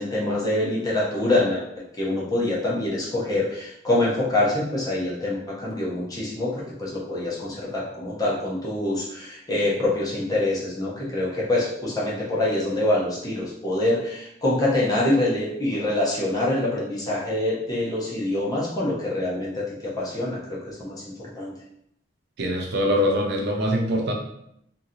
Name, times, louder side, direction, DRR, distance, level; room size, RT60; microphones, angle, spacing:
voice 1, 0.0-1.6 2.0-21.5, left 1 dB, 20° left, -6 dB, 0.8 m, -25 dB
voice 2, 22.4-24.1, equal, 65° right, 2 dB, 0.5 m, -23 dB
2.8 x 2.5 x 2.7 m, 0.76 s
head